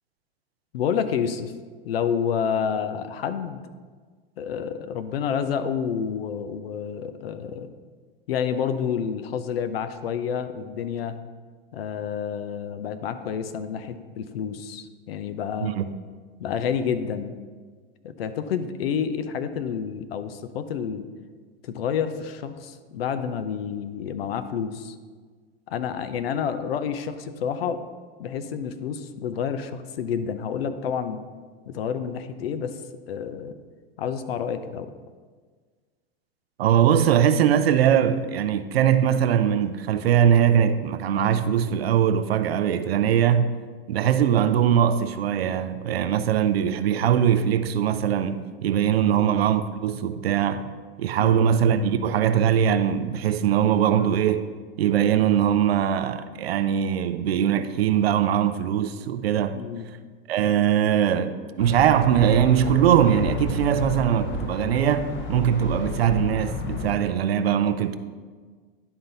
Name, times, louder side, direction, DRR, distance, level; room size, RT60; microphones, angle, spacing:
voice 1, 0.7-1.5 1.8-3.6 4.4-7.7 8.3-11.2 11.7-15.7 16.4-17.3 18.0-21.1 21.6-25.0 25.7-27.8 28.2-31.2 31.7-32.8 33.1-33.6 34.0-34.9 49.1-49.3 51.2-51.4 59.5-59.9, left 7 dB, 80° left, 0.6 m, -29 dB
voice 2, 15.6-15.9 36.6-43.5 43.9-54.5 54.8-59.6 60.3-68.0, right 9 dB, 85° right, 0.6 m, -21 dB
sound 1, 61.6-67.0, left 4 dB, 40° left, 0.8 m, -32 dB
11.0 x 4.0 x 4.0 m
hypercardioid pair, 100°, 30 cm